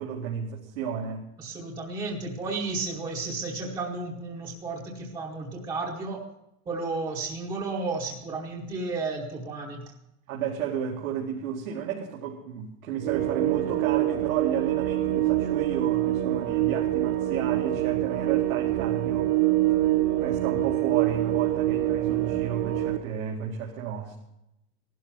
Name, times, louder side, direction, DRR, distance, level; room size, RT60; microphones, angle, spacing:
voice 1, 0.0-1.3 10.3-19.3 20.2-24.1, right 8 dB, 85° right, -2 dB, 2.3 m, -32 dB
voice 2, 1.4-6.2 6.7-9.8, right 3 dB, 10° right, -2 dB, 0.9 m, -33 dB
sound 1, 13.0-23.0, right 14 dB, 25° right, 0.6 m, -25 dB
15.5 x 12.0 x 5.7 m, 0.86 s
supercardioid pair, 175°, 41 cm